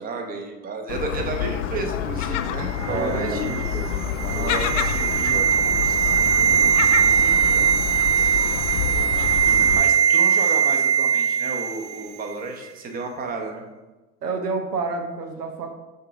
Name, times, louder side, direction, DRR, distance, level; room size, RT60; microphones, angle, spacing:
voice 1, 0.0-3.6 4.3-7.9 8.2-9.1 9.7-13.6, right 3 dB, 20° right, 3 dB, 0.8 m, -33 dB
Gull seagull, 0.9-9.8, left 9 dB, 50° left, 0.5 m, -28 dB
sound 1, 2.8-12.1 12.3-12.5, right 8 dB, 45° right, 0.4 m, -21 dB
voice 2, 2.9-4.6 9.1-9.8 14.2-15.7, right 4 dB, 80° right, 4 dB, 0.9 m, -30 dB
6.5 x 3.8 x 4.8 m, 1.2 s
figure-of-eight pair, 80°, 47 cm